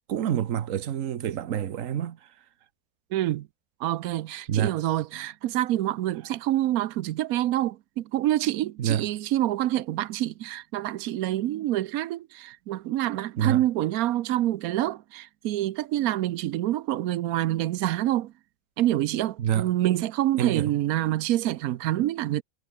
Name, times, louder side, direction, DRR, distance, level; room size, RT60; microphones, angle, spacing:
voice 1, 0.1-2.2 4.5-4.8 8.8-9.1 13.4-13.6 19.4-19.7 20.4-20.7, right 10 dB, 55° right, 1.0 m, -27 dB
voice 2, 3.1-3.5 3.8-18.3 18.8-22.4, right 14 dB, 90° right, 0.7 m, -27 dB
omnidirectional pair, 2.2 m